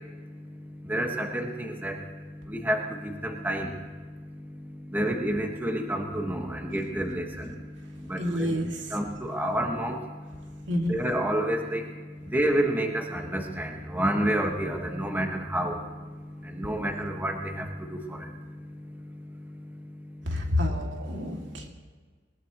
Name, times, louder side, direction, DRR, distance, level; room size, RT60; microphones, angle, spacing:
voice 1, 0.9-2.0 2.5-3.7 4.9-7.5 8.1-8.5 8.9-10.0 10.9-11.8 12.3-15.8 16.5-18.2, right 1 dB, 10° right, 2 dB, 1.5 m, -29 dB
voice 2, 8.2-8.8 10.7-10.9 20.3-21.7, left 1 dB, 90° right, 1 dB, 2.3 m, -28 dB
20.0 x 20.0 x 3.0 m, 1.5 s
head